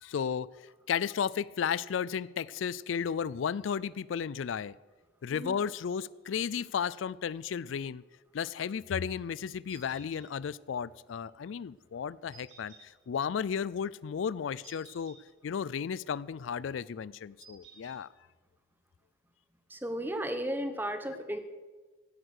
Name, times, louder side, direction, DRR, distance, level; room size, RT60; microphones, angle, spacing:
voice 1, 0.0-0.5 0.9-4.7 5.2-8.0 8.3-15.2 15.4-18.1, left 7 dB, 85° left, 21 dB, 0.4 m, -34 dB
sound 1, 9.7-10.2 12.3-12.8 14.6-15.2 17.4-17.9, right 5 dB, 90° right, 4.3 m, -54 dB
voice 2, 19.7-21.4, equal, 10° right, 8 dB, 1.0 m, -34 dB
16.0 x 9.4 x 6.5 m, 1.3 s
head